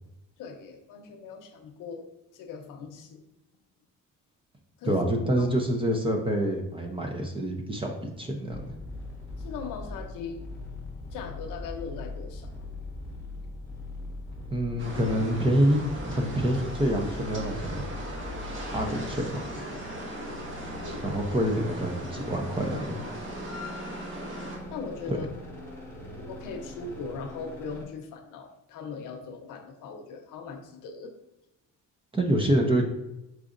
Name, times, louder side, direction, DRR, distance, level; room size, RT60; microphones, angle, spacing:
voice 1, 0.4-2.1 2.3-3.2 4.8-5.0 5.4-5.5 9.4-10.4 11.1-12.5 20.8-21.0 24.7-25.3 25.9-31.1, left 5 dB, 80° left, 4 dB, 0.8 m, -39 dB
voice 2, 4.8-8.6 14.5-17.9 18.7-19.4 21.0-23.0 25.1-25.2 32.1-32.8, right 1 dB, 15° right, 2 dB, 0.6 m, -26 dB
sound 1, 8.5-27.8, left 2 dB, 5° left, 0.9 m, -41 dB
sound 2, 14.8-24.6, right 1 dB, 40° right, 1.1 m, -39 dB
4.7 x 4.0 x 2.5 m, 0.87 s
cardioid pair, 125°, 31 cm